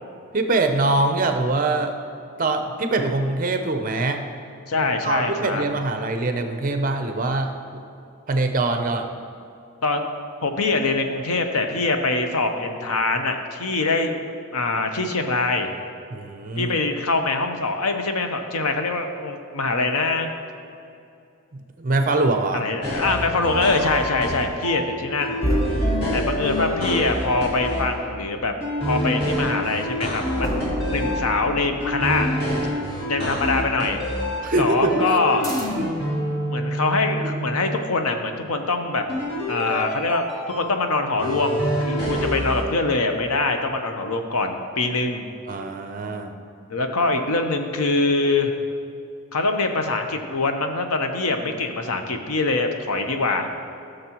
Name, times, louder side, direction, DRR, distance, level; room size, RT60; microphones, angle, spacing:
voice 1, 0.3-1.9 2.4-4.2 5.0-7.5 8.3-9.1 16.1-16.7 21.5-22.6 25.9-26.2 34.4-35.1 35.8-35.9 42.1-42.3 45.5-46.3, right 2 dB, 40° right, 5 dB, 0.6 m, -23 dB
voice 2, 4.7-5.6 9.8-10.1 10.4-15.7 16.6-20.3 22.5-25.4 26.1-28.5 28.9-32.3 33.0-34.0 34.6-35.5 36.4-39.1 39.5-45.3 46.7-48.6 49.3-53.5, left 3 dB, 85° left, 6 dB, 0.8 m, -24 dB
sound 1, 22.8-24.8 25.2-27.8 28.6-31.2 31.8-34.4 34.7-37.6 39.1-40.6 41.2-42.6, equal, 50° left, 2.2 m, -27 dB
sound 2, 25.4-28.2 30.4-33.1 35.4-36.1, right 1 dB, 15° left, 1.0 m, -29 dB
14.5 x 6.7 x 3.0 m, 2.6 s
head